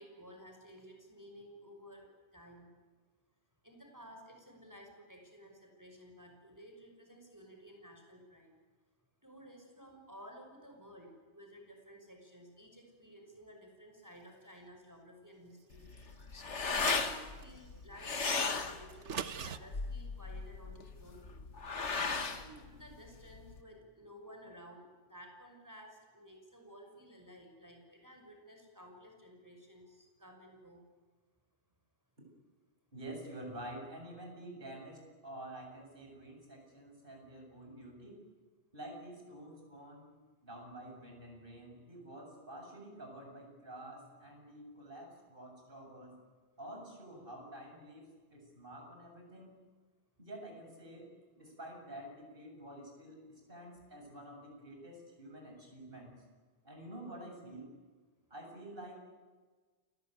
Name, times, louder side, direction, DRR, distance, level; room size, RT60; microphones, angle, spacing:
voice 1, 0.0-2.7 3.6-8.5 9.2-15.9 16.5-21.4 22.1-30.8, equal, 15° right, 2 dB, 5.9 m, -54 dB
sound 1, 15.7-23.6, left 4 dB, 90° left, 2.0 m, -36 dB
sound 2, 16.6-17.5 18.9-19.6, right 7 dB, 90° right, 1.3 m, -41 dB
voice 2, 32.9-38.2 38.7-40.1 40.4-46.2 46.6-49.5 50.2-51.1 51.4-56.2 56.6-57.7 58.3-59.1, right 1 dB, 50° right, 2 dB, 8.1 m, -49 dB
29.5 x 21.5 x 9.4 m, 1.4 s
omnidirectional pair, 1.2 m